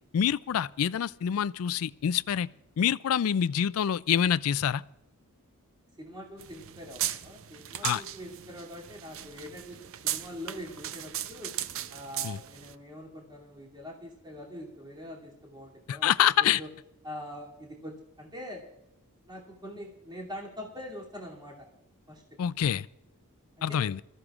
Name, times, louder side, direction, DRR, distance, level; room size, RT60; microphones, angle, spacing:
voice 1, 0.1-2.5 2.8-4.8 7.8-8.0 12.2-12.4 15.9-16.6 22.4-22.9 23.6-24.0, left 9 dB, 70° left, 0.3 m, -26 dB
voice 2, 6.0-11.5 11.9-16.1 16.4-16.7 17.0-18.7 19.2-21.6 22.1-22.2 23.6-23.9, equal, 20° right, 2.6 m, -43 dB
sound 1, 6.4-12.7, right 11 dB, 65° right, 0.6 m, -37 dB
24.5 x 14.0 x 2.4 m
head